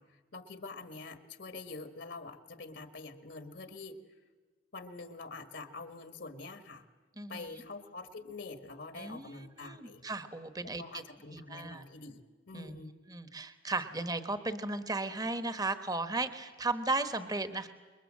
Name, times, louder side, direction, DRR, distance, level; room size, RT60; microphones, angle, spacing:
voice 1, 0.0-4.0 4.7-6.8 7.3-10.0 10.6-12.9, left 3 dB, 65° left, 9 dB, 1.6 m, -46 dB
voice 2, 9.0-10.8 11.3-11.8 12.5-12.8 13.1-17.7, right 3 dB, 20° right, 10 dB, 1.2 m, -35 dB
27.5 x 22.0 x 7.6 m, 1.4 s
head